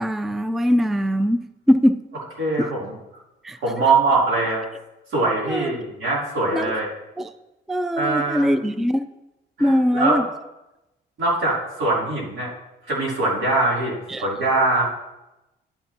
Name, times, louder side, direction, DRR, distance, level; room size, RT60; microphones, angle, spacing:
voice 1, 0.0-2.0 2.6-2.7 3.4-3.9 5.5-5.7 6.5-6.7 7.2-7.3 7.7-9.1 9.6-10.3 14.1-14.3, equal, ahead, 0.3 m, -21 dB
voice 2, 2.4-2.9 3.6-4.6 5.1-6.9 7.9-8.5 9.6-10.2 11.2-12.5 12.9-14.9, right 3 dB, 80° right, 3.4 m, -22 dB
11.0 x 8.5 x 2.9 m
cardioid pair, 90°, 20 cm